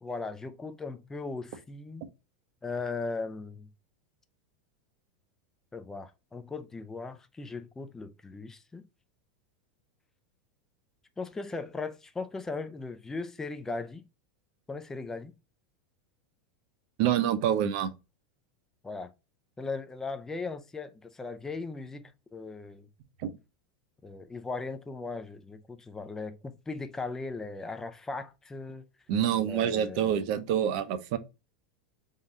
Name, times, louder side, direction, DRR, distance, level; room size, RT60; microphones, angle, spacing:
voice 1, 0.0-2.1 2.6-3.7 5.7-8.9 11.2-14.0 14.7-15.3 18.8-19.1 19.6-22.9 24.0-28.9 29.4-30.2, left 3 dB, 10° left, 0.4 m, -38 dB
voice 2, 17.0-17.9 23.2-23.3 29.1-31.2, right 10 dB, 60° right, 0.7 m, -27 dB
3.7 x 2.3 x 4.1 m
supercardioid pair, 125°, 5 cm